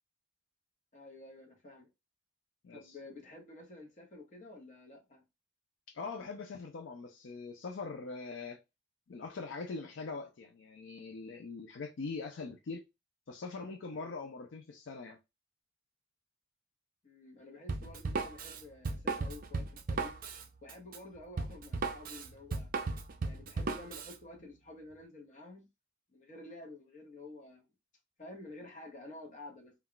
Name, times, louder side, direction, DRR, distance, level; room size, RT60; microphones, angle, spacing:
voice 1, 0.9-1.9 2.7-5.2 17.0-20.1 20.6-22.7 23.2-25.6 26.1-27.6 28.2-29.7, left 2 dB, 40° left, 0.8 m, -50 dB
voice 2, 2.6-3.0 5.9-8.6 9.1-12.9 13.3-15.2, left 4 dB, 70° left, 0.4 m, -42 dB
Drum kit, 17.7-24.1, right 3 dB, 45° right, 0.4 m, -36 dB
2.3 x 2.2 x 3.7 m
head